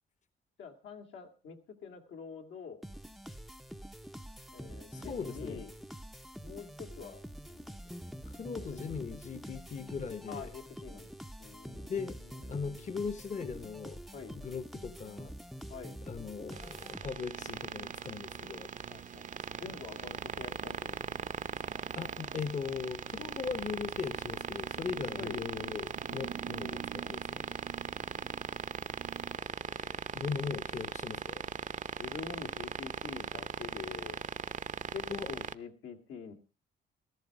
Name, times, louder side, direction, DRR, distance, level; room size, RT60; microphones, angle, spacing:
voice 1, 0.6-2.8 4.5-5.7 6.4-7.9 8.6-8.9 10.3-13.1 14.1-14.4 15.7-16.0 18.9-21.3 25.1-25.4 26.4-28.4 29.1-30.2 32.0-34.2 34.8-36.3, left 6 dB, 75° left, 2.4 m, -47 dB
sound 1, 2.8-17.4, equal, ahead, 0.6 m, -46 dB
voice 2, 4.9-5.6 8.3-10.5 11.9-12.2 12.5-14.0 14.3-15.3 16.1-18.7 21.9-27.6 29.7-31.5 35.1-35.3, left 5 dB, 35° left, 1.1 m, -39 dB
sound 2, 16.5-35.5, right 7 dB, 40° right, 0.8 m, -40 dB
sound 3, 17.3-29.4, right 9 dB, 75° right, 1.6 m, -50 dB
15.5 x 13.5 x 4.8 m
cardioid pair, 90°, 20 cm